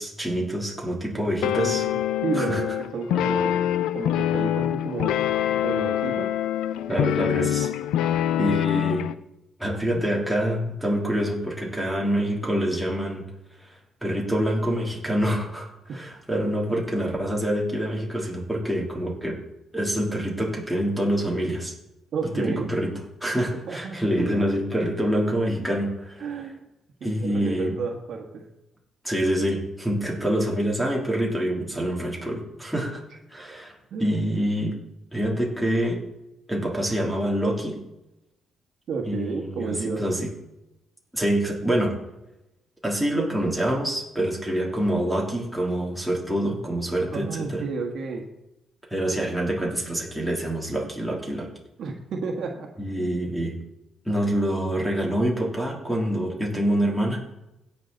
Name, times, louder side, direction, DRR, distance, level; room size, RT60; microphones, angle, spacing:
voice 1, 0.0-1.9 2.3-2.6 6.9-7.7 8.4-9.1 9.6-13.3 13.6-13.7 14.0-19.4 19.7-21.7 22.4-22.9 23.2-26.3 27.0-27.8 29.0-33.0 33.3-33.7 34.0-34.8 35.1-36.0 36.5-37.8 39.0-40.3 41.1-42.0 42.8-47.6 48.9-51.5 52.8-53.6 54.0-57.2, right 1 dB, ahead, -3 dB, 3.2 m, -26 dB
sound 1, 1.4-9.1, left 11 dB, 85° left, 0.4 m, -25 dB
voice 2, 1.5-3.7 3.9-5.2 5.6-6.3 22.1-22.7 23.7-24.0 26.2-26.5 27.0-28.5 33.9-34.2 38.9-40.0 47.1-48.3 51.8-52.7 53.0-53.2, right 4 dB, 65° right, 2 dB, 1.6 m, -31 dB
17.0 x 5.9 x 4.0 m, 0.92 s
cardioid pair, 90°, 0 cm